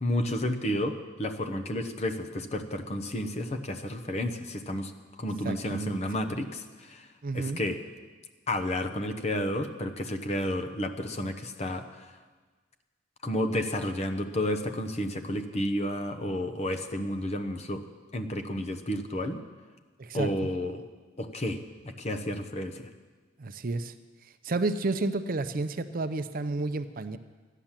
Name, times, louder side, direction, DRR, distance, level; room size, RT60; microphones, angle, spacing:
voice 1, 0.0-4.9 5.2-7.1 7.3-7.8 8.5-12.1 13.2-17.8 18.1-19.4 20.1-20.8 21.2-21.6 21.8-22.9, left 1 dB, 35° left, 7 dB, 0.9 m, -31 dB
voice 2, 5.4-6.0 7.2-7.6 20.0-20.3 23.4-23.9 24.4-27.2, right 3 dB, 50° right, 11 dB, 0.6 m, -31 dB
13.0 x 10.0 x 7.4 m, 1.4 s
head